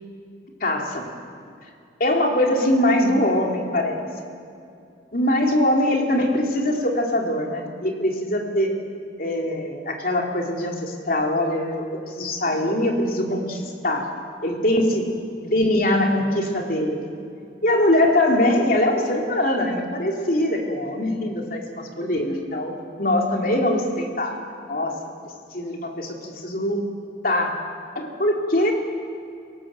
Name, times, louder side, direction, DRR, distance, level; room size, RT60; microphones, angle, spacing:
voice 1, 0.6-1.1 2.0-4.1 5.1-8.7 9.2-11.8 12.1-14.1 14.4-15.1 15.4-17.0 17.6-24.4 24.7-25.0 25.5-26.8 27.2-27.6 27.9-28.7, left 1 dB, 50° left, 1 dB, 3.3 m, -22 dB
27.0 x 18.0 x 7.6 m, 2.5 s
head